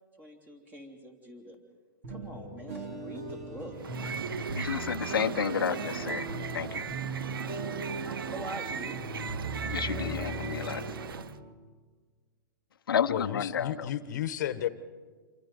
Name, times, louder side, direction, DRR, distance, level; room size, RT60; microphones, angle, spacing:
voice 1, 0.2-1.6 2.1-3.9 8.2-9.2, equal, 15° right, 3 dB, 3.3 m, -45 dB
sound 1, 2.0-11.5, right 1 dB, 45° right, 3.3 m, -39 dB
sound 2, 3.7-11.4, right 7 dB, 85° right, 0.7 m, -37 dB
voice 2, 4.5-6.3 6.5-6.8 9.7-10.8 12.9-13.9, left 8 dB, 85° left, 9 dB, 0.9 m, -31 dB
voice 3, 13.1-14.7, left 11 dB, 55° left, 11 dB, 1.3 m, -32 dB
28.0 x 24.0 x 5.4 m, 1.5 s
hypercardioid pair, 155°, 12 cm